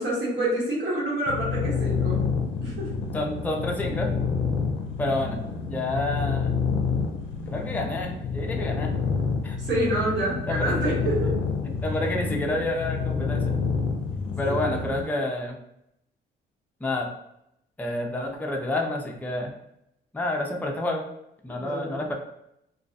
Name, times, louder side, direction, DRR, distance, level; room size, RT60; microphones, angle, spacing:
voice 1, 0.0-2.2 2.6-2.9 9.6-11.4 14.4-14.8 21.5-22.0, right 1 dB, 75° right, -7 dB, 1.3 m, -28 dB
sound 1, 1.3-15.1, left 5 dB, 75° left, 0.5 m, -28 dB
voice 2, 3.1-4.1 5.0-5.4 5.7-6.6 7.5-8.9 9.4-9.6 10.5-10.7 11.8-13.5 14.4-15.6 16.8-17.1 17.8-19.6 20.1-21.0 21.4-22.1, left 1 dB, 10° left, 0 dB, 0.4 m, -29 dB
2.4 x 2.1 x 2.6 m, 0.79 s
cardioid pair, 90°, 20 cm